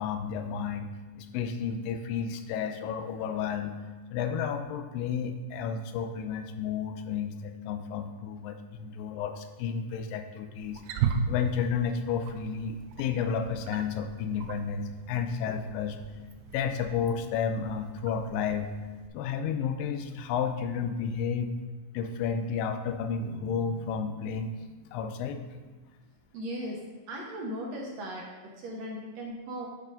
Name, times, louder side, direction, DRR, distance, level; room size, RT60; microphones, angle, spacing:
voice 1, 0.0-3.8 4.1-10.8 11.3-16.0 16.5-18.7 19.1-21.5 21.9-24.5 24.9-25.4, left 6 dB, 85° left, 7 dB, 2.3 m, -32 dB
Wild animals, 10.6-19.1, right 6 dB, 90° right, 2.3 m, -37 dB
sound 1, 23.2-26.2, right 2 dB, 50° left, 0.9 m, -49 dB
voice 2, 26.3-29.7, equal, 70° right, -1 dB, 1.7 m, -38 dB
8.3 x 4.4 x 5.2 m, 1.3 s
omnidirectional pair, 3.9 m